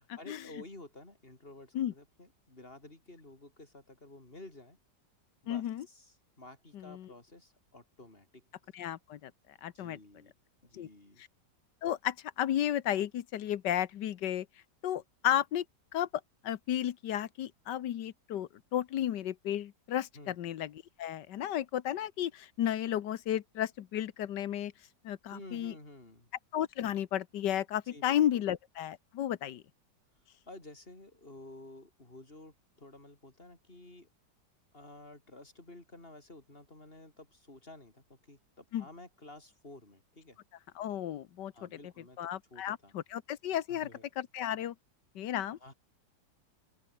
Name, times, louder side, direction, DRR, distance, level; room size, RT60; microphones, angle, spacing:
voice 1, 0.0-4.8 5.4-8.4 9.7-10.3 10.6-11.2 20.1-20.4 25.3-26.3 27.8-28.1 28.3-28.4 30.5-34.1 34.7-40.4 41.5-42.2 42.5-42.9 43.7-44.0 45.6-45.7, left 2 dB, 30° left, 5.5 m, -52 dB
voice 2, 5.5-5.8 6.7-7.1 8.7-9.3 9.6-10.0 10.8-10.9 11.8-14.5 14.8-15.6 15.9-16.1 16.4-20.7 21.0-24.7 25.0-25.7 26.5-29.6 38.7-38.8 40.8-41.5 42.2-43.9 44.2-44.7 45.1-45.6, left 11 dB, 80° left, 1.6 m, -33 dB
open air
omnidirectional pair, 1.8 m